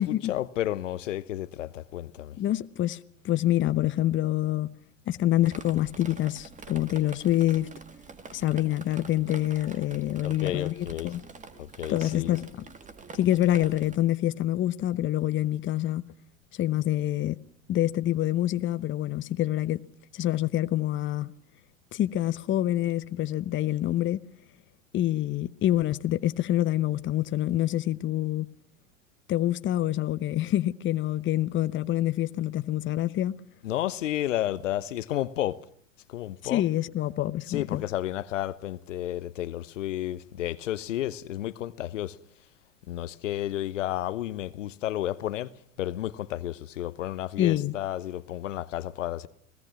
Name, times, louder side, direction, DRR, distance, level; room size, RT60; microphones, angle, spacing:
voice 1, 0.0-2.4 10.2-11.1 11.6-12.4 33.6-35.6 36.1-36.7 37.4-42.2 42.9-45.5 45.8-49.3, left 13 dB, 70° left, 1.0 m, -32 dB
voice 2, 2.4-3.0 3.2-4.7 5.1-7.7 8.3-11.2 11.9-12.6 13.1-16.1 16.6-17.4 17.7-19.8 20.1-21.3 21.9-24.2 24.9-28.5 29.3-33.3 36.4-37.8 47.4-47.7, left 13 dB, 30° left, 1.0 m, -26 dB
Drip, 5.5-14.0, right 4 dB, 20° right, 2.0 m, -46 dB
29.5 x 18.0 x 6.0 m
figure-of-eight pair, 85°, 39 cm